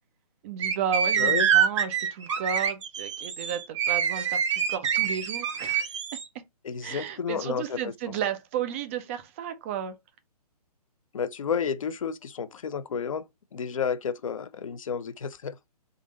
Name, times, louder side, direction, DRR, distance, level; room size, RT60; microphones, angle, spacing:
voice 1, 0.4-5.9 6.8-10.0, right 8 dB, 20° right, 0.5 m, -33 dB
sound 1, 0.6-6.2, right 8 dB, 45° right, 0.9 m, -26 dB
voice 2, 1.2-1.5 6.6-7.9 11.1-13.3 13.5-15.6, left 6 dB, 55° left, 0.6 m, -31 dB
3.7 x 2.6 x 3.7 m
figure-of-eight pair, 130°, 21 cm